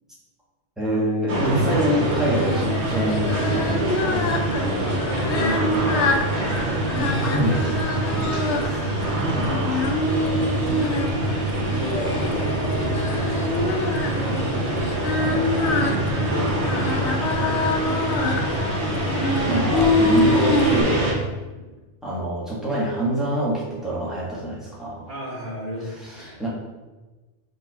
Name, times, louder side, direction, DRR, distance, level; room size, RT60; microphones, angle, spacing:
voice 1, 0.8-3.3 3.5-4.4 7.0-7.7 8.0-10.0 15.0-16.1 19.5-21.2 22.0-25.1 26.2-26.5, right 1 dB, ahead, -7 dB, 1.8 m, -26 dB
sound 1, 1.3-21.1, right 1 dB, 55° right, 1.5 m, -25 dB
Singing, 2.1-20.8, left 2 dB, 60° left, 0.9 m, -26 dB
voice 2, 4.8-6.1 6.4-6.7 8.4-8.7 11.4-14.4 21.5-21.7 25.1-26.4, equal, 35° right, -7 dB, 2.3 m, -33 dB
5.6 x 4.2 x 4.3 m, 1.2 s
omnidirectional pair, 1.4 m